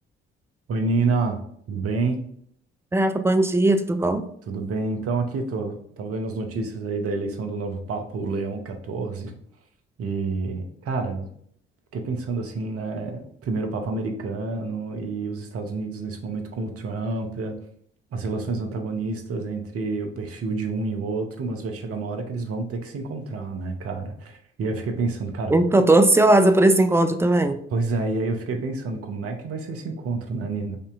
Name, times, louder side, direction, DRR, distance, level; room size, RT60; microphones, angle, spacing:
voice 1, 0.7-1.4 1.7-2.2 4.5-9.3 10.0-11.3 11.9-17.5 18.1-25.5 27.7-30.8, right 3 dB, 50° right, 4 dB, 0.8 m, -28 dB
voice 2, 2.9-4.3 25.5-27.6, right 2 dB, 10° right, 8 dB, 0.3 m, -18 dB
5.1 x 2.7 x 2.5 m, 0.66 s
figure-of-eight pair, 40°, 31 cm